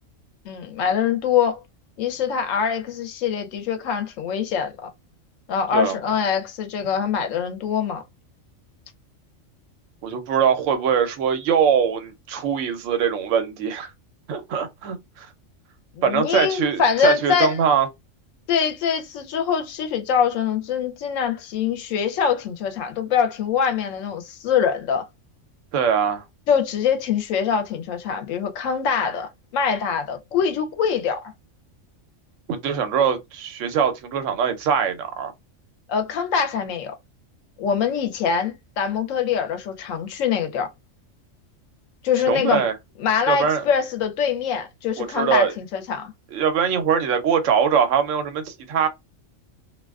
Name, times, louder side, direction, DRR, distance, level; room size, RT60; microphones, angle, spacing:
voice 1, 0.5-1.6 2.0-4.9 5.5-8.0 16.0-17.6 18.5-25.0 26.5-31.3 35.9-36.9 37.6-40.7 42.0-42.7 43.0-46.1, left 7 dB, 85° left, 1.0 m, -23 dB
voice 2, 10.0-13.9 14.3-15.3 16.0-17.9 25.7-26.2 32.5-35.3 42.3-42.7 43.3-43.6 45.0-45.5 46.3-48.9, right 7 dB, 75° right, 0.9 m, -22 dB
2.4 x 2.3 x 2.3 m
omnidirectional pair, 1.3 m